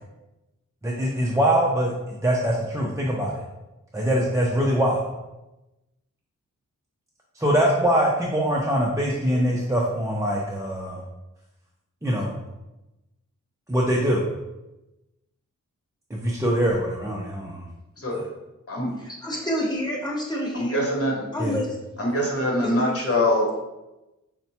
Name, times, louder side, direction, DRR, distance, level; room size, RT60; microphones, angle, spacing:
voice 1, 0.8-3.4 3.9-5.1 7.3-11.0 12.0-12.3 13.7-14.2 16.1-17.6 18.1-18.2 21.4-21.6, equal, 10° right, -4 dB, 0.5 m, -23 dB
voice 2, 19.0-21.0 21.3-21.8 22.6-22.9 23.2-23.3, equal, 15° left, -4 dB, 1.1 m, -29 dB
voice 3, 20.5-21.2 22.0-23.6, left 1 dB, 45° left, -1 dB, 1.1 m, -23 dB
5.3 x 2.2 x 2.8 m, 0.99 s
cardioid pair, 60°, 32 cm